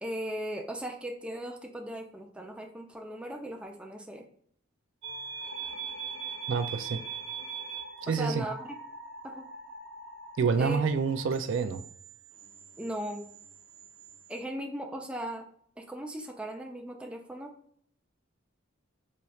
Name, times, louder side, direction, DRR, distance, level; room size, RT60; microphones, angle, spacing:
voice 1, 0.0-4.3 8.1-8.7 9.2-9.5 10.6-10.8 12.8-13.3 14.3-15.5 15.8-17.6, right 1 dB, 5° right, 2 dB, 0.5 m, -38 dB
sound 1, 5.0-14.4, right 5 dB, 90° right, 1.0 m, -42 dB
voice 2, 6.5-7.0 8.0-8.5 10.4-11.8, right 5 dB, 65° right, 8 dB, 0.4 m, -28 dB
4.1 x 3.1 x 2.3 m, 0.62 s
head